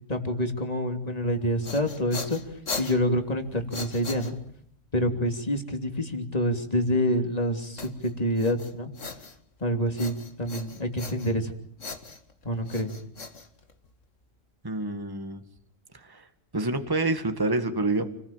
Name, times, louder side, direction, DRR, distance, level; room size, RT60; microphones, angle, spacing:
voice 1, 0.1-2.4 2.8-4.3 4.9-7.9 8.2-8.9 9.6-11.5 12.4-12.9, equal, 30° left, 4 dB, 3.2 m, -27 dB
sound 1, 1.3-4.7 7.8-9.6 10.0-11.5 11.8-14.1, left 4 dB, 80° left, 2.5 m, -39 dB
voice 2, 14.6-15.4 15.9-16.3 16.5-18.1, right 2 dB, 20° right, 7 dB, 1.9 m, -27 dB
30.0 x 20.5 x 9.1 m, 0.67 s
omnidirectional pair, 1.3 m